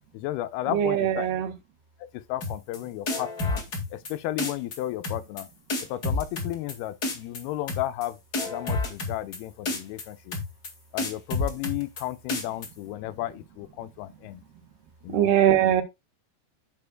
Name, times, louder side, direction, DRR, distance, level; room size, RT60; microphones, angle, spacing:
voice 1, 0.1-1.3 2.1-3.6 3.9-5.5 5.9-8.2 8.5-10.4 10.9-14.4 15.0-15.3, left 14 dB, 80° left, 2.4 m, -33 dB
voice 2, 0.7-1.5 15.1-15.8, right 11 dB, 80° right, 3.5 m, -22 dB
sound 1, 2.4-2.8 3.1-4.1 4.4-4.8 5.0-5.4 5.7-6.7 7.0-7.4 7.7-8.1 8.3-9.4 9.7-10.0 10.3-10.7 11.0-12.0 12.3-12.7, left 2 dB, 35° left, 1.7 m, -29 dB
9.5 x 7.6 x 2.3 m
omnidirectional pair, 4.7 m